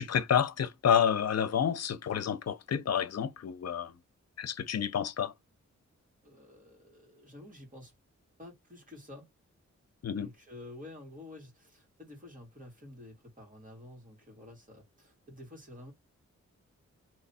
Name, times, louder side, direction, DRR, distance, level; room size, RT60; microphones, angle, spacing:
voice 1, 0.0-3.9 4.4-5.3 10.0-10.3, left 8 dB, 60° left, 0.7 m, -29 dB
voice 2, 6.2-7.9 8.4-9.3 10.1-15.9, left 1 dB, 30° right, 2.3 m, -50 dB
3.2 x 3.1 x 4.2 m
wide cardioid pair, 115°, 29 cm